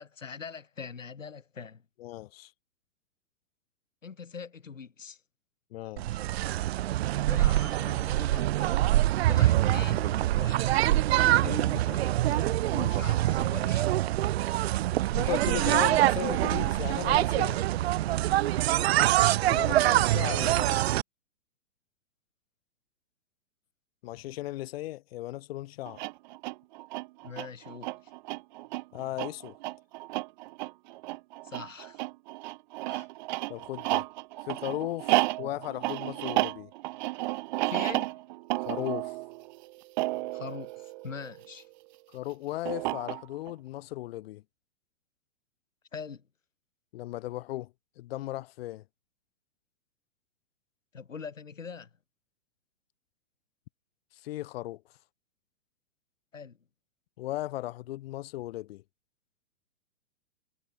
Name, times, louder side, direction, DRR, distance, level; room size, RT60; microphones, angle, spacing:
voice 1, 0.0-1.8 4.0-5.2 7.3-8.8 9.3-13.9 18.7-19.0 27.2-27.9 31.4-32.0 32.9-33.1 35.4-35.5 37.7-38.2 40.3-41.7 45.9-46.2 50.9-51.9 56.3-56.6, left 6 dB, 90° left, 3.8 m, -42 dB
voice 2, 2.0-2.5 5.7-6.2 15.1-17.6 19.5-20.8 24.0-26.0 28.9-29.5 33.5-34.0 34.5-36.7 38.6-39.2 42.1-44.4 46.9-48.8 54.1-54.8 57.2-58.8, left 16 dB, 50° left, 2.5 m, -36 dB
sound 1, 6.0-21.0, right 15 dB, 55° right, 1.0 m, -25 dB
sound 2, 25.9-41.6 42.7-43.5, right 20 dB, 40° right, 0.6 m, -33 dB
hypercardioid pair, 120°, 37 cm